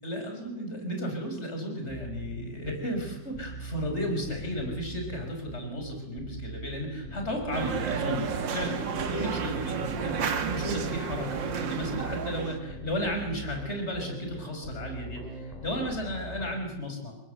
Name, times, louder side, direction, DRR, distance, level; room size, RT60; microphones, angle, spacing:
voice 1, 0.0-17.1, equal, 35° left, 3 dB, 5.8 m, -34 dB
sound 1, 1.9-16.6, right 2 dB, 20° left, 4.4 m, -41 dB
sound 2, 7.5-12.6, right 6 dB, 80° right, 2.3 m, -31 dB
29.0 x 22.0 x 7.9 m, 0.88 s
omnidirectional pair, 2.0 m